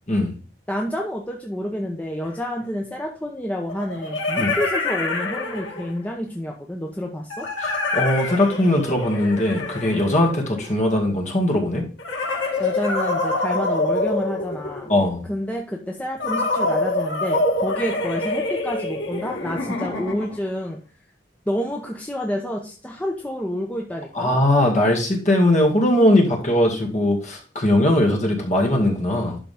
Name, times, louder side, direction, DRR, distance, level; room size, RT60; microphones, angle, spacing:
voice 1, 0.7-7.5 12.6-14.9 15.3-20.8 21.5-24.3, equal, 10° left, 0 dB, 0.8 m, -29 dB
sound 1, 2.2-2.3 3.7-6.1 7.3-10.8 12.0-15.0 16.2-20.5, left 2 dB, 85° left, 2.0 m, -26 dB
voice 2, 7.6-11.8 14.9-15.3 24.1-29.4, left 1 dB, 40° left, 0 dB, 2.0 m, -20 dB
11.5 x 3.9 x 3.5 m, 0.38 s
head